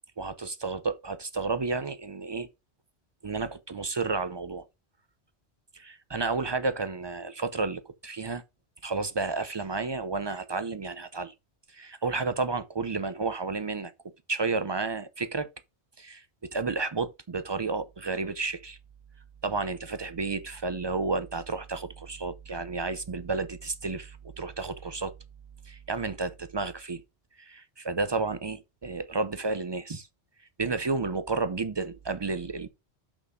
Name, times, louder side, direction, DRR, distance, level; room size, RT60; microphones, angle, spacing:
voice 1, 0.2-2.5 3.2-4.7 5.7-8.4 8.8-11.3 11.7-13.9 14.3-15.5 16.0-16.2 16.5-18.8 19.4-25.1 25.7-27.0 27.4-30.1 30.6-32.7, right 3 dB, 45° right, 0.3 m, -31 dB
5.9 x 4.0 x 5.4 m
omnidirectional pair, 1.2 m